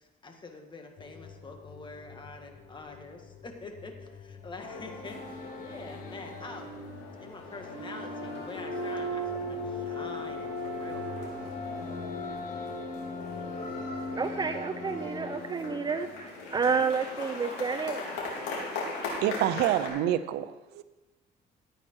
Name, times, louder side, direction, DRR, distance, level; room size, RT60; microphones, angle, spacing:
voice 1, 0.2-3.2 3.4-6.7 7.2-11.7, left 3 dB, 30° left, 4 dB, 1.8 m, -45 dB
sound 1, 1.0-16.4, left 5 dB, 55° left, 0.9 m, -50 dB
sound 2, 4.6-19.9, left 2 dB, 90° left, 3.6 m, -37 dB
voice 2, 14.2-18.0, right 5 dB, 25° right, 8 dB, 0.6 m, -30 dB
voice 3, 19.2-20.8, right 12 dB, 80° right, 13 dB, 0.6 m, -27 dB
14.0 x 9.0 x 4.7 m, 1.1 s
cardioid pair, 110°, 17 cm